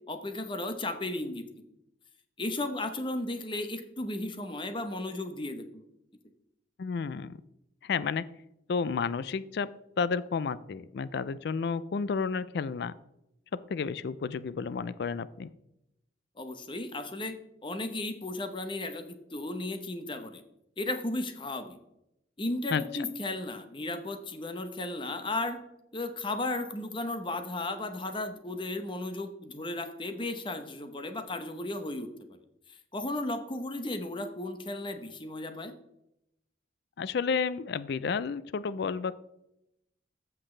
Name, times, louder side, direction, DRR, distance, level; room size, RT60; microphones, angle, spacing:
voice 1, 0.1-1.4 2.4-5.8 16.4-17.4 17.6-20.4 20.8-21.8 22.4-25.6 25.9-32.4 32.9-35.7, left 2 dB, 25° left, 8 dB, 0.9 m, -35 dB
voice 2, 6.8-7.3 7.8-8.2 8.7-9.7 10.0-12.9 13.5-15.5 22.7-22.8 37.0-39.1, left 5 dB, 60° left, 17 dB, 0.4 m, -31 dB
14.0 x 6.0 x 3.3 m, 0.83 s
head